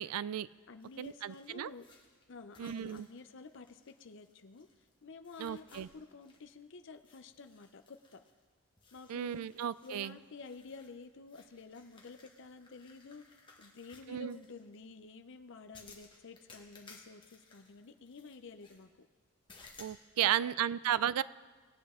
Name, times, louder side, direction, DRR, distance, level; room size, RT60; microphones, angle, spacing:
voice 1, 0.0-0.5 1.0-1.7 2.6-3.1 5.4-5.9 9.1-10.1 14.1-14.4 19.8-21.2, right 10 dB, 80° right, 18 dB, 0.3 m, -34 dB
voice 2, 0.7-1.8 2.3-4.7 5.0-8.2 8.9-9.4 9.8-13.2 13.6-19.1 20.2-20.5, left 4 dB, 55° left, 7 dB, 0.6 m, -51 dB
sound 1, 0.8-4.9 5.2-6.6 6.9-8.4 8.8-14.8 15.7-18.8 19.5-20.0, left 4 dB, 20° left, 1.3 m, -60 dB
19.0 x 8.2 x 3.6 m, 1.4 s
head